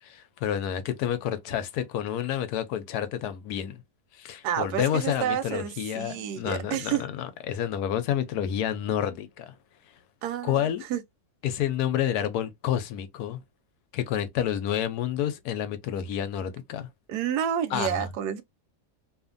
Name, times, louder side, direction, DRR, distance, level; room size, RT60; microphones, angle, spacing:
voice 1, 0.0-3.8 4.1-9.6 10.4-10.8 11.4-13.4 13.9-16.9 17.7-18.1, left 10 dB, 85° left, 1.1 m, -29 dB
voice 2, 4.4-7.0 10.2-11.0 17.1-18.4, right 9 dB, 90° right, 1.2 m, -30 dB
2.7 x 2.5 x 2.5 m
omnidirectional pair, 1.7 m